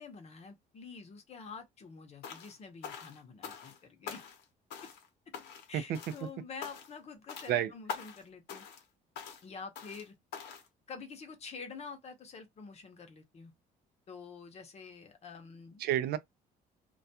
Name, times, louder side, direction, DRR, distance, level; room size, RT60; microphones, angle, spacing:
voice 1, 0.0-4.2 5.7-8.6 9.4-10.2 10.9-13.5 14.1-15.8, left 5 dB, 40° left, 0.7 m, -47 dB
sound 1, 2.2-2.6 2.8-3.8 4.1-4.4 4.7-5.1 5.3-5.7 5.9-6.3 6.6-7.0 7.3-7.5 7.9-8.2 8.5-8.8 9.2-9.4 9.8-10.0 10.3-10.7, left 7 dB, 75° left, 0.8 m, -44 dB
voice 2, 5.7-6.3 7.5-7.7 15.8-16.2, right 11 dB, 70° right, 0.4 m, -31 dB
2.3 x 2.2 x 2.7 m
cardioid pair, 110°, 17 cm